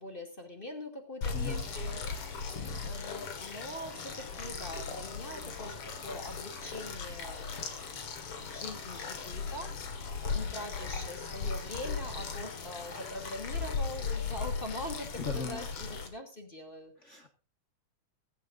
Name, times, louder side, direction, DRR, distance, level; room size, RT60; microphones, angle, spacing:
voice 1, 0.0-7.7 8.4-16.9, left 1 dB, 20° left, 3 dB, 2.3 m, -43 dB
sound 1, 1.2-16.1, left 5 dB, 50° left, 2.6 m, -37 dB
voice 2, 1.3-1.6 15.2-15.6 17.1-17.3, left 5 dB, 35° left, 4 dB, 1.2 m, -37 dB
16.5 x 16.0 x 2.6 m, 0.33 s
omnidirectional pair, 3.6 m